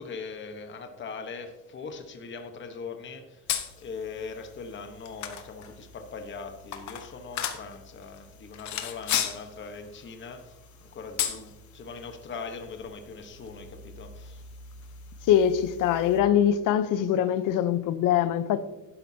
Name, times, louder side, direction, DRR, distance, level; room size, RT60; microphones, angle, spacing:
voice 1, 0.0-3.4 3.8-10.5 10.8-14.4, left 4 dB, 35° left, 1.1 m, -40 dB
sound 1, 3.5-16.2, left 9 dB, 60° left, 1.1 m, -37 dB
voice 2, 15.3-18.6, left 9 dB, 80° left, 0.8 m, -23 dB
12.0 x 10.0 x 2.8 m
cardioid pair, 160°, 31 cm